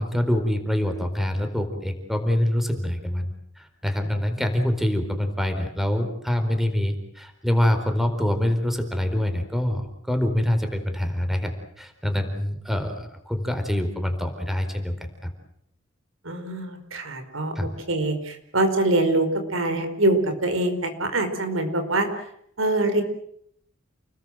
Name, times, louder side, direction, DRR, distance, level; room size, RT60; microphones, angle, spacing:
voice 1, 0.0-15.3 17.6-17.7, left 1 dB, ahead, 6 dB, 4.4 m, -25 dB
voice 2, 16.2-22.3 22.6-23.0, right 2 dB, 85° right, 7 dB, 5.0 m, -24 dB
30.0 x 21.0 x 7.9 m, 0.71 s
head